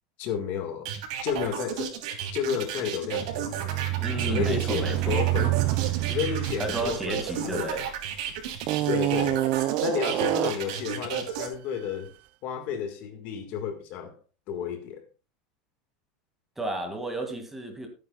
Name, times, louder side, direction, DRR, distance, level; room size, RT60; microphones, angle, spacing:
voice 1, 0.2-0.9 1.2-2.0 2.3-3.9 4.2-5.6 6.1-7.7 8.9-9.5 9.8-12.1 12.4-14.2 14.5-15.0, left 8 dB, 50° left, 1.7 m, -32 dB
sound 1, 0.8-11.5, right 9 dB, 70° right, 3.2 m, -33 dB
sound 2, 3.2-8.0 8.6-10.8, right 18 dB, 45° right, 0.4 m, -28 dB
voice 2, 4.0-5.2 6.6-7.9 16.6-17.9, right 2 dB, 5° right, 2.1 m, -32 dB
16.0 x 9.1 x 2.3 m
supercardioid pair, 145°, 4 cm